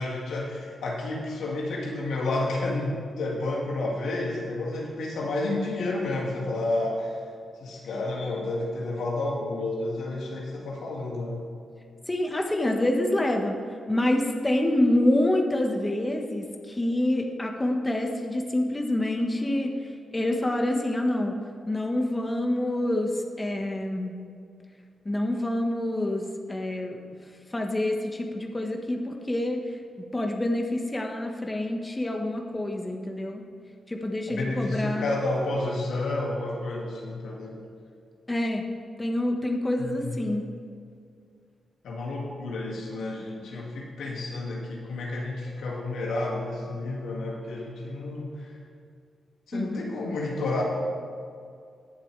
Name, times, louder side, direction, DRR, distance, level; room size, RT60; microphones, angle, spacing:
voice 1, 0.0-7.1 7.6-11.4 34.3-37.6 39.8-40.4 41.8-48.5 49.5-50.6, left 2 dB, 85° left, -3 dB, 2.2 m, -30 dB
voice 2, 12.1-13.6 13.9-19.7 20.1-21.4 21.7-24.1 25.0-27.0 27.5-29.8 30.1-33.4 33.9-35.2 38.3-38.7 39.0-40.4 49.5-49.9, left 1 dB, 20° left, 2 dB, 1.4 m, -27 dB
19.5 x 7.3 x 3.4 m, 2.3 s
cardioid pair, 65°, 0 cm